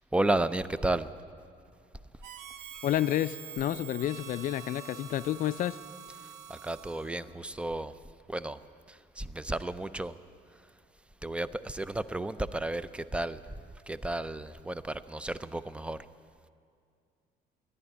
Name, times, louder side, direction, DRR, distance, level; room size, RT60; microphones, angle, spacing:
voice 1, 0.1-1.1 6.5-7.9 8.3-8.6 8.9-10.1 11.2-13.4 13.9-16.0, right 2 dB, 5° right, 15 dB, 0.4 m, -32 dB
Harmonica, 2.2-7.3, right 8 dB, 85° right, 0.9 m, -46 dB
voice 2, 2.8-5.8, left 12 dB, 55° left, 14 dB, 0.4 m, -30 dB
14.0 x 11.0 x 9.5 m, 2.3 s
cardioid pair, 110°, 17 cm